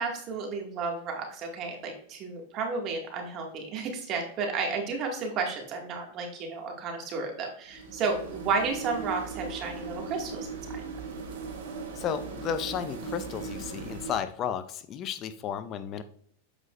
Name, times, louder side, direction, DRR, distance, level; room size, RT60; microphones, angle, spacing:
voice 1, 0.0-10.8, right 4 dB, 40° right, 2 dB, 2.1 m, -32 dB
sound 1, 7.7-14.2, right 4 dB, 75° right, 2.2 m, -38 dB
voice 2, 12.0-16.0, left 8 dB, 40° left, 11 dB, 0.6 m, -33 dB
7.9 x 5.6 x 2.6 m, 0.64 s
hypercardioid pair, 110°, 0 cm